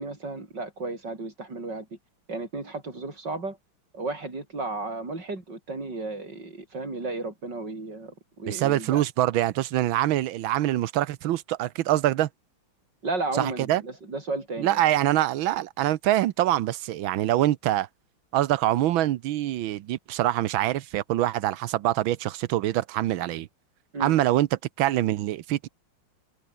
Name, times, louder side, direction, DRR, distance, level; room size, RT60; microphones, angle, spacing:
voice 1, 0.0-2.0 2.3-3.6 3.9-9.0 13.0-14.8 23.9-24.1, right 3 dB, 60° right, 6.2 m, -33 dB
voice 2, 8.5-12.3 13.3-13.8 14.6-17.9 18.3-23.5 24.0-25.7, right 14 dB, 85° right, 1.6 m, -24 dB
omnidirectional pair, 2.2 m